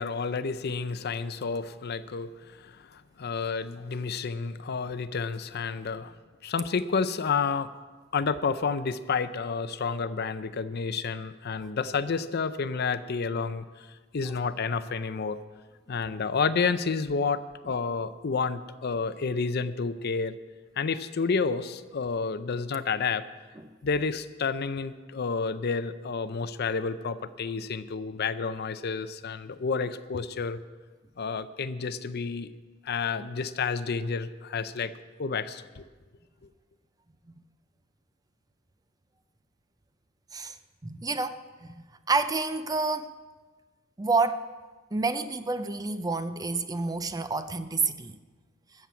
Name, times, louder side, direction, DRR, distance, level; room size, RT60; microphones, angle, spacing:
voice 1, 0.0-6.1 6.4-7.7 8.1-13.9 14.1-15.4 15.9-20.4 20.8-23.2 23.8-30.6 31.2-32.5 32.8-34.9 35.2-35.8, left 5 dB, 55° left, 13 dB, 0.5 m, -30 dB
voice 2, 40.8-41.4 41.6-41.7 42.1-43.1 44.0-44.5 44.9-48.2, right 3 dB, 20° right, 11 dB, 0.5 m, -28 dB
13.5 x 7.3 x 8.3 m, 1.4 s
head